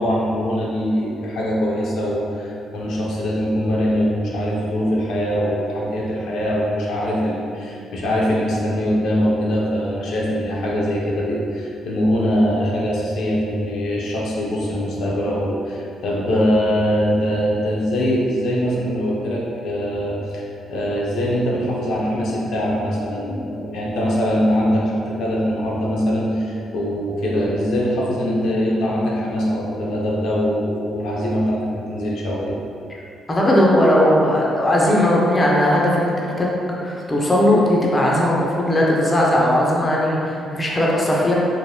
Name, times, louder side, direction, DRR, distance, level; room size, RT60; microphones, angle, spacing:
voice 1, 0.0-32.6, equal, 75° left, -4 dB, 0.5 m, -22 dB
voice 2, 33.3-36.5 36.8-41.3, left 1 dB, 20° left, -4 dB, 0.5 m, -18 dB
3.2 x 2.0 x 2.7 m, 2.5 s
cardioid pair, 90°, 0 cm